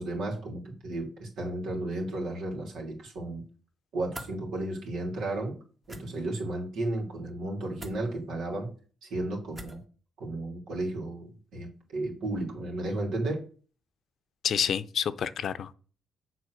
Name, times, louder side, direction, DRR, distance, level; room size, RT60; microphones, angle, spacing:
voice 1, 0.0-3.4 3.9-5.6 5.9-8.7 9.0-9.8 10.2-13.4, right 2 dB, 75° right, 2.9 m, -33 dB
sound 1, 4.1-4.3 5.8-6.0 7.8-8.0 9.5-9.8, right 1 dB, 20° right, 1.6 m, -42 dB
voice 2, 14.4-15.7, left 8 dB, 60° left, 0.6 m, -29 dB
7.5 x 3.9 x 6.4 m
cardioid pair, 90°, 0 cm